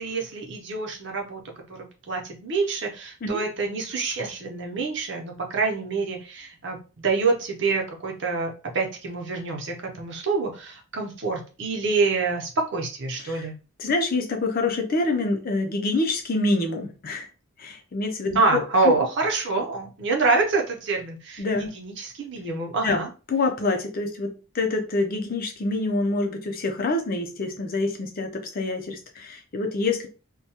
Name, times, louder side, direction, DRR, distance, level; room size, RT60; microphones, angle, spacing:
voice 1, 0.0-1.4 1.7-13.5 18.3-23.1, right 3 dB, 60° right, 2 dB, 0.6 m, -26 dB
voice 2, 13.8-17.3 17.6-19.0 21.4-21.7 22.8-23.0 23.3-30.1, left 2 dB, 45° left, 4 dB, 0.5 m, -26 dB
2.2 x 2.2 x 2.7 m, 0.33 s
head